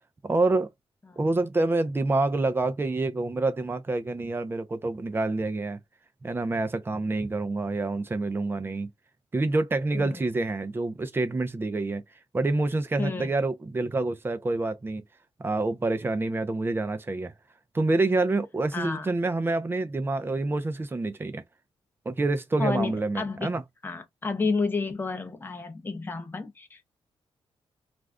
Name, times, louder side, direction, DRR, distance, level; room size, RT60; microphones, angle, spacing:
voice 1, 0.2-0.7 1.2-5.8 6.2-8.9 9.3-12.0 12.3-15.0 15.4-17.3 17.7-21.4 22.1-23.6, right 2 dB, 20° right, 0.5 m, -27 dB
voice 2, 13.0-13.3 18.7-19.1 22.6-23.5 23.8-26.8, left 4 dB, 20° left, 0.7 m, -31 dB
2.5 x 2.3 x 3.4 m
cardioid pair, 110°, 11 cm